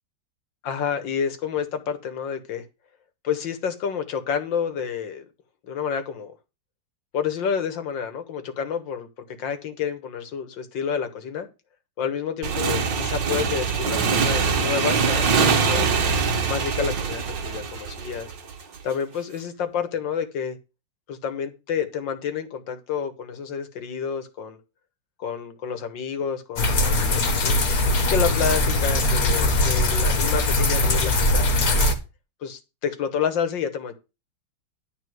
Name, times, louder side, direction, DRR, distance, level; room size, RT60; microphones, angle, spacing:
voice 1, 0.6-2.6 3.2-5.3 5.6-6.3 7.1-11.5 12.0-15.9 16.5-18.3 18.8-20.6 21.1-24.6 25.2-27.6 28.1-31.9 32.4-33.9, left 7 dB, 70° left, 9 dB, 2.0 m, -29 dB
Motorcycle / Engine, 12.4-18.8, right 5 dB, 65° right, 2.1 m, -23 dB
sound 1, 26.6-31.9, left 2 dB, 50° left, 1.9 m, -21 dB
11.5 x 4.1 x 7.8 m, 0.28 s
omnidirectional pair, 2.1 m